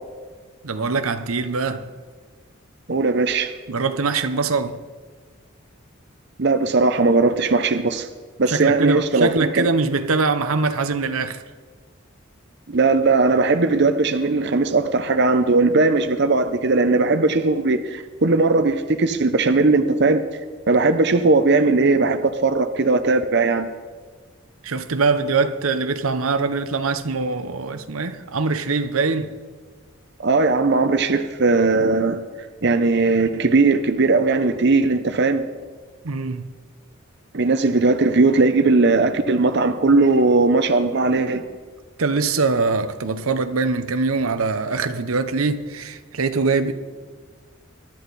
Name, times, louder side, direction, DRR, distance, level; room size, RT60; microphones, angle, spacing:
voice 1, 0.6-1.9 3.7-4.8 8.5-11.4 24.6-29.3 36.0-36.5 42.0-46.7, right 4 dB, 85° right, 0.9 m, -23 dB
voice 2, 2.9-3.5 6.4-8.1 8.4-9.7 12.7-20.2 20.7-23.7 30.2-32.2 32.6-35.4 37.3-41.4, right 3 dB, 55° right, 0.7 m, -18 dB
22.5 x 11.5 x 4.1 m
head